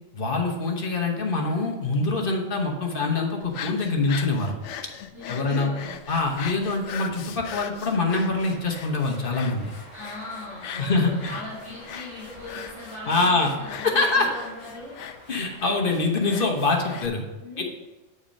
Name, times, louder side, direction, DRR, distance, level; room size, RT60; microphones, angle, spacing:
voice 1, 0.1-4.5 5.3-5.7 6.1-9.6 10.8-11.3 13.1-13.5 13.8-14.3 15.3-17.2 17.6-17.7, left 3 dB, 45° left, 1 dB, 1.1 m, -24 dB
sound 1, 3.4-17.1, left 8 dB, 70° left, 0.8 m, -40 dB
voice 2, 5.1-5.9 9.9-15.0 17.4-17.6, left 2 dB, 65° right, -10 dB, 2.7 m, -39 dB
sound 2, 8.1-15.6, equal, 20° right, 1.9 m, -48 dB
8.7 x 4.3 x 5.2 m, 1.1 s
omnidirectional pair, 1.4 m